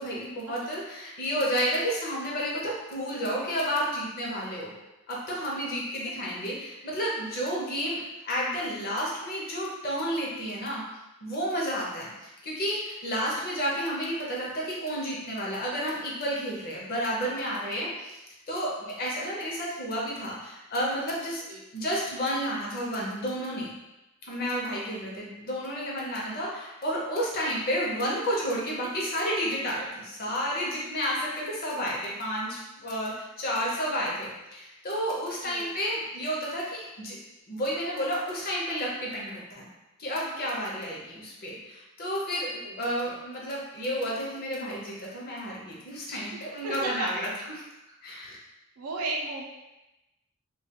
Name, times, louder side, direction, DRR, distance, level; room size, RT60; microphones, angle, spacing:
voice 1, 0.0-4.7 5.1-10.8 11.2-12.1 12.4-18.2 18.5-21.4 21.7-23.7 24.2-33.1 33.4-37.2 37.5-39.6 40.0-47.3 48.0-48.4, equal, 45° left, -4 dB, 0.7 m, -31 dB
voice 2, 24.7-25.1 28.8-28.9 29.3-29.4 35.5-35.7 42.6-43.1 46.3-47.1 48.8-49.4, right 3 dB, 75° right, 0 dB, 0.5 m, -36 dB
2.3 x 2.3 x 2.8 m, 0.97 s
head